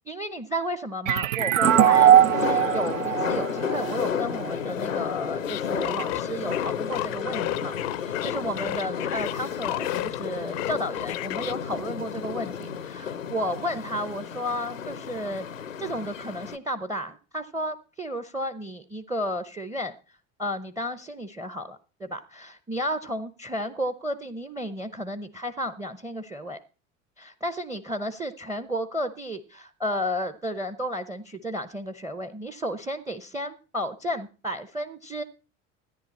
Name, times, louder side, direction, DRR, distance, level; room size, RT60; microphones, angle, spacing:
voice 1, 0.1-7.7 8.1-15.5 15.8-19.9 20.4-26.6 27.2-35.2, equal, 10° right, 14 dB, 0.7 m, -32 dB
sound 1, 1.1-4.5, right 11 dB, 80° right, 0.5 m, -20 dB
sound 2, 1.6-16.6, left 8 dB, 90° left, 0.6 m, -32 dB
sound 3, 5.5-10.2 10.5-11.5, left 18 dB, 45° left, 0.5 m, -33 dB
13.5 x 10.0 x 4.2 m, 0.35 s
figure-of-eight pair, 70°, 38 cm